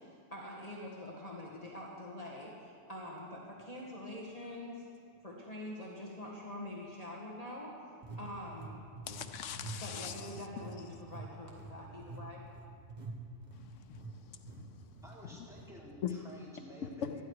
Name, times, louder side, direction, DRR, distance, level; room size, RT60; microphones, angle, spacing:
voice 1, 0.3-4.8 5.2-7.8 8.2-8.8 9.8-12.5, left 1 dB, 30° left, 1.8 m, -45 dB
sound 1, 3.6-3.7 4.3-4.5 8.0-9.3 9.5-9.8 10.0-14.1 14.5-14.6 15.0-15.2 15.5-15.7, right 4 dB, 35° right, 1.7 m, -47 dB
voice 2, 9.1-10.5 13.5-14.9 16.0-16.1 17.0-17.2, left 8 dB, 90° left, 1.1 m, -41 dB
voice 3, 15.0-17.2, equal, 5° right, 3.9 m, -52 dB
19.0 x 13.5 x 4.8 m
omnidirectional pair, 1.2 m